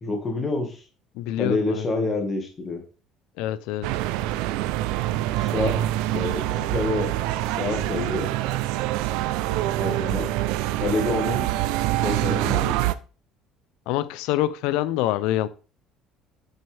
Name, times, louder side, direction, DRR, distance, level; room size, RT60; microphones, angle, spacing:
voice 1, 0.0-0.8 1.4-2.8 5.4-5.8 6.1-6.4 6.7-7.1 7.6-8.3 9.8-10.3 10.8-11.5 12.0-12.8, left 2 dB, 20° left, 1.9 m, -27 dB
voice 2, 1.1-1.9 3.4-3.9 13.9-15.5, left 14 dB, 75° left, 0.6 m, -25 dB
sound 1, 3.8-13.0, right 15 dB, 80° right, 0.5 m, -25 dB
8.9 x 6.6 x 3.5 m
cardioid pair, 175°, 0 cm